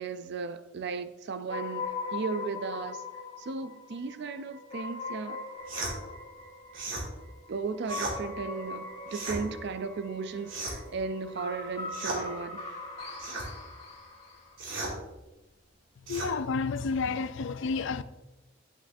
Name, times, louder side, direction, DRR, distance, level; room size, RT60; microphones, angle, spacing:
voice 1, 0.0-3.0 3.4-5.4 7.5-12.6, right 4 dB, 60° right, 0.4 m, -36 dB
sound 1, 1.5-14.5, left 3 dB, 30° left, 2.4 m, -41 dB
sound 2, 5.7-5.9 6.7-7.1 7.8-8.2 9.1-9.4 10.5-10.9 11.9-12.2 13.2-13.5 14.6-14.9 16.1-16.3, right 2 dB, 90° right, 2.4 m, -35 dB
voice 2, 16.1-18.0, left 4 dB, 70° left, 0.4 m, -30 dB
8.5 x 7.9 x 2.6 m
head